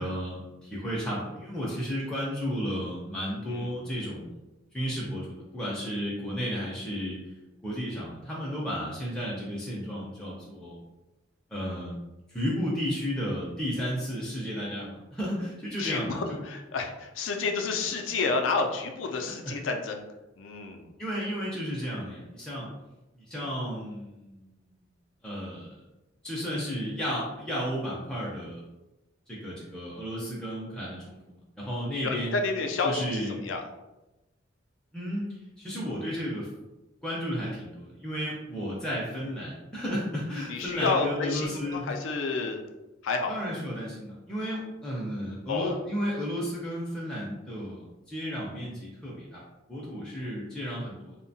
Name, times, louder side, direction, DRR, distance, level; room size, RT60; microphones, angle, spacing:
voice 1, 0.0-4.4 4.7-7.2 7.6-10.8 11.5-12.0 12.3-16.4 21.0-22.7 23.3-24.6 25.2-25.7 26.2-28.6 29.3-32.4 32.8-33.4 34.9-35.2 35.6-36.5 37.0-41.9 43.3-49.4 49.7-51.2, equal, 5° left, -6 dB, 0.4 m, -33 dB
voice 2, 15.8-20.0 20.4-20.9 32.0-33.6 40.5-42.6 43.0-43.4 45.5-45.8, left 4 dB, 75° left, 4 dB, 0.4 m, -30 dB
2.7 x 2.1 x 2.6 m, 1.0 s
head